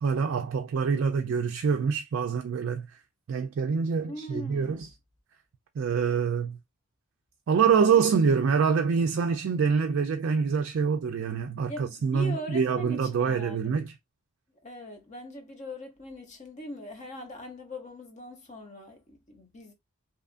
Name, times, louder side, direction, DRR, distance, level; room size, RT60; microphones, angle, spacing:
voice 1, 0.0-2.9 3.3-4.9 5.8-6.6 7.5-13.9, right 6 dB, 60° right, 0.3 m, -25 dB
voice 2, 4.0-4.9 7.9-8.7 11.7-13.8 14.6-19.7, equal, 35° left, 0.7 m, -41 dB
2.8 x 2.4 x 2.4 m
head